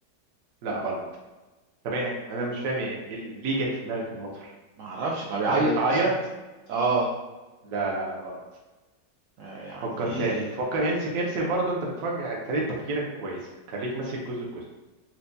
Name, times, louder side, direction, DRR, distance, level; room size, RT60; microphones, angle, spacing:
voice 1, 0.6-1.0 1.8-4.5 5.5-6.1 7.6-8.4 9.8-12.6 12.9-13.4 13.7-14.6, right 2 dB, 60° right, -3 dB, 1.0 m, -29 dB
voice 2, 4.8-6.0 6.7-7.1 9.4-10.5, right 3 dB, 90° right, -3 dB, 0.6 m, -27 dB
4.4 x 2.2 x 2.6 m, 1.2 s
omnidirectional pair, 1.9 m